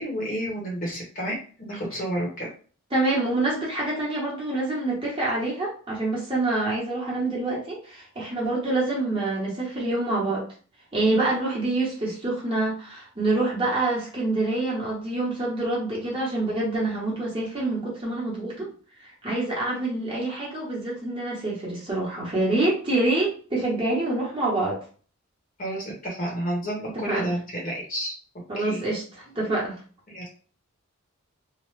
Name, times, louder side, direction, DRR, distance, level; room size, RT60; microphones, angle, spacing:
voice 1, 0.0-2.5 25.6-28.1 28.6-28.8 30.1-30.3, right 1 dB, 40° left, -2 dB, 1.0 m, -30 dB
voice 2, 2.9-10.4 10.9-18.7 19.0-24.8 26.9-27.3 28.5-29.8, right 2 dB, 25° right, -5 dB, 1.0 m, -26 dB
2.9 x 2.1 x 3.2 m, 0.40 s
head